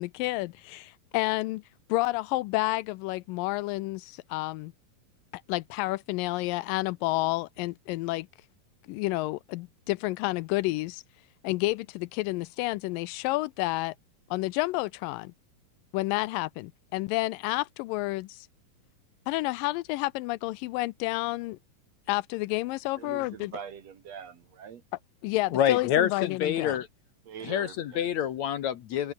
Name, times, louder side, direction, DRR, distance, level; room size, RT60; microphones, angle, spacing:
voice 1, 0.0-1.6 1.9-4.7 5.5-8.3 8.9-11.0 11.4-14.0 14.3-15.3 15.9-18.5 19.3-21.6 22.1-23.5 25.2-26.8, left 20 dB, 80° left, 2.2 m, -30 dB
voice 2, 23.0-24.8 25.5-25.7 27.3-28.1, right 8 dB, 55° right, 2.3 m, -43 dB
voice 3, 25.5-26.9 27.4-29.1, left 10 dB, 65° left, 2.1 m, -27 dB
omnidirectional pair, 4.0 m